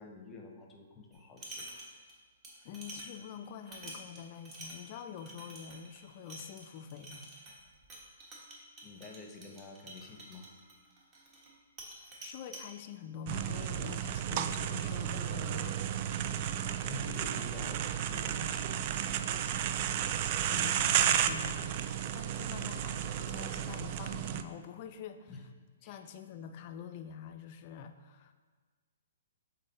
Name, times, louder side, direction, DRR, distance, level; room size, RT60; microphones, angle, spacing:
voice 1, 0.0-1.7 8.8-10.5 16.2-19.6 25.3-25.4 25.8-26.0, left 3 dB, 20° left, 2 dB, 0.9 m, -48 dB
sound 1, 1.1-2.2 2.4-11.5 11.8-12.7, right 1 dB, 25° right, 1.5 m, -49 dB
voice 2, 2.6-7.3 12.2-15.9 20.5-21.8 22.1-25.3 25.8-28.3, left 8 dB, 40° left, 8 dB, 0.4 m, -46 dB
sound 2, 13.3-24.4, right 10 dB, 40° right, 0.3 m, -33 dB
7.3 x 3.9 x 4.1 m, 1.4 s
figure-of-eight pair, 125°, 0 cm